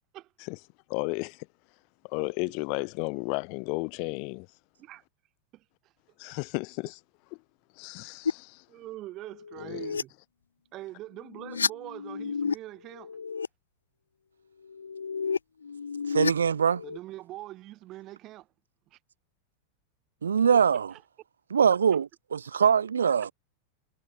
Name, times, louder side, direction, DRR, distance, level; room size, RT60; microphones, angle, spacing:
voice 1, 0.9-1.5 2.0-4.5 6.2-7.0 7.8-8.6 9.6-9.8, left 36 dB, 45° left, 3.1 m, -33 dB
sound 1, 8.2-8.3 9.3-10.0 11.2-12.5 12.9-13.5 14.6-17.0, left 5 dB, 75° left, 1.6 m, -31 dB
voice 2, 8.7-10.1 10.7-13.1 16.8-18.5 18.9-19.0 20.5-20.6 20.9-21.0, right 16 dB, 35° right, 3.9 m, -43 dB
voice 3, 16.1-16.8 20.2-20.9 21.5-23.3, right 7 dB, 70° right, 0.9 m, -23 dB
figure-of-eight pair, 90°, 0 cm